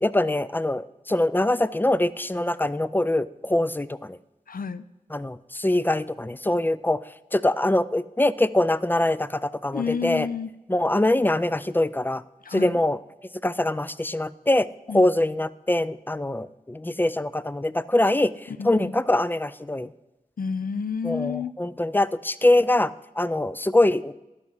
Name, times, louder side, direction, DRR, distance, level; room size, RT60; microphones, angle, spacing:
voice 1, 0.0-4.2 5.1-7.0 7.3-10.3 10.7-12.2 12.5-13.0 13.4-14.7 14.9-18.3 18.6-19.9 21.0-24.1, left 1 dB, 15° left, 17 dB, 0.3 m, -23 dB
voice 2, 4.5-4.8 9.7-10.5 12.4-12.8 14.9-15.1 18.5-18.9 20.4-21.5, left 6 dB, 75° left, 15 dB, 0.4 m, -30 dB
12.0 x 4.8 x 5.6 m, 0.98 s
wide cardioid pair, 40°, 15 cm